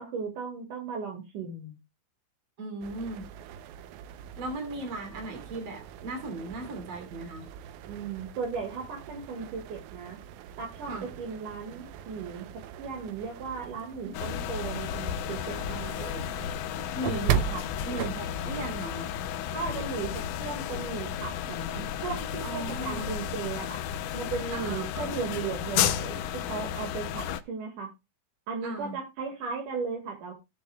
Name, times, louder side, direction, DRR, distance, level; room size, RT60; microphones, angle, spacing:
voice 1, 0.0-1.7 7.9-10.2 10.6-12.5 12.8-16.4 17.0-17.6 19.5-23.8 24.1-27.9 28.5-30.3, right 5 dB, 60° right, 3.2 m, -36 dB
voice 2, 2.6-3.3 4.4-7.5 10.9-11.1 16.9-17.4 17.8-19.1 22.4-23.1 24.5-25.1 28.6-29.0, right 2 dB, 35° right, 3.4 m, -37 dB
sound 1, 2.8-19.1, right 8 dB, 80° right, 1.7 m, -38 dB
sound 2, 14.1-27.4, left 9 dB, 75° left, 2.0 m, -33 dB
18.5 x 6.7 x 2.3 m
omnidirectional pair, 4.2 m